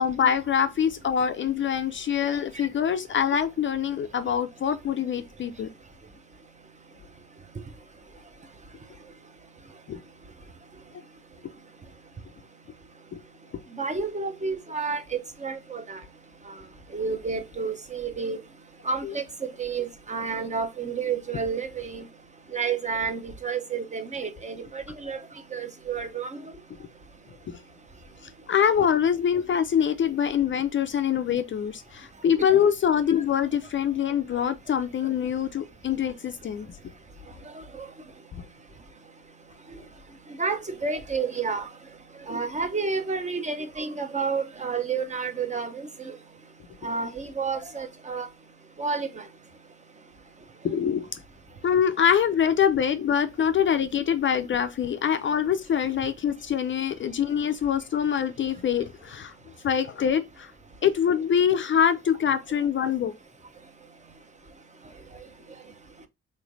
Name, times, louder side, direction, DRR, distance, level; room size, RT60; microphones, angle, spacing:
voice 1, 0.0-5.7 9.9-10.0 13.1-13.2 19.0-19.2 27.5-27.6 28.5-36.8 50.6-51.2 51.6-59.3 59.6-60.5 60.8-63.1, left 8 dB, 40° left, 0.4 m, -24 dB
voice 2, 13.7-16.0 16.9-18.4 18.9-19.2 19.6-22.0 22.5-25.2 25.5-26.4 40.4-41.7 42.3-46.1 46.8-48.3 48.8-49.1, right 5 dB, 25° right, 0.7 m, -30 dB
3.7 x 3.1 x 2.5 m
cardioid pair, 90°, 30 cm